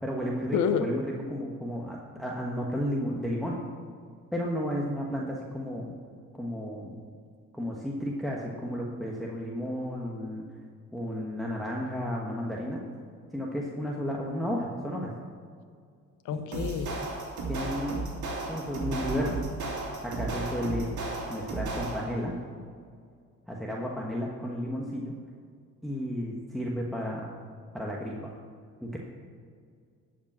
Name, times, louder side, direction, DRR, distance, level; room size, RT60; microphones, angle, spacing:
voice 1, 0.0-3.6 4.3-6.0 6.4-7.0 7.5-10.4 10.9-12.8 13.3-15.1 16.3-16.4 17.5-18.0 18.5-19.4 20.0-21.0 21.3-22.3 23.5-25.1 25.8-27.3 27.7-28.3 28.8-29.0, equal, ahead, -3 dB, 1.3 m, -33 dB
voice 2, 0.5-0.9 16.3-17.0, left 8 dB, 80° left, 10 dB, 0.9 m, -28 dB
sound 1, 16.5-22.2, right 3 dB, 70° right, 2.5 m, -34 dB
12.0 x 5.3 x 7.3 m, 2.1 s
cardioid pair, 90°, 30 cm